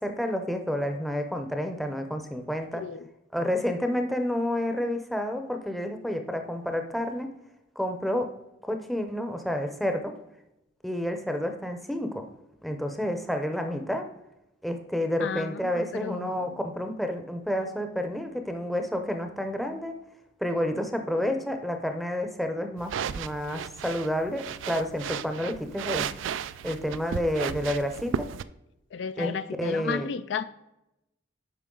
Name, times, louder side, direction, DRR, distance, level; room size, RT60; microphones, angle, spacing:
voice 1, 0.0-2.8 3.3-7.3 7.8-8.3 8.7-10.1 10.8-12.2 12.6-14.1 14.6-19.9 20.4-26.1 26.6-28.3 29.2-30.1, left 1 dB, ahead, 0.7 m, -30 dB
voice 2, 15.2-16.6 28.9-30.4, left 6 dB, 65° left, 0.4 m, -33 dB
sound 1, 22.8-28.4, right 7 dB, 75° right, 0.3 m, -34 dB
8.3 x 5.6 x 3.8 m
head